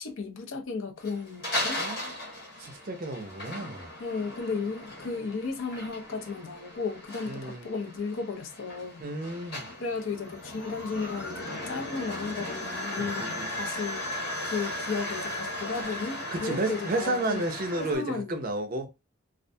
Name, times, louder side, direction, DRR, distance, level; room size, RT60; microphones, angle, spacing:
voice 1, 0.0-1.8 4.0-9.0 9.8-14.1 14.4-17.4 17.8-18.4, left 4 dB, 65° left, 0.5 m, -34 dB
sound 1, 1.0-18.0, left 1 dB, 45° left, 1.0 m, -37 dB
voice 2, 1.8-2.2 2.6-3.9 7.3-7.7 9.0-9.7 13.0-13.5 16.3-18.9, right 2 dB, 40° right, 0.4 m, -32 dB
2.4 x 2.1 x 2.6 m
head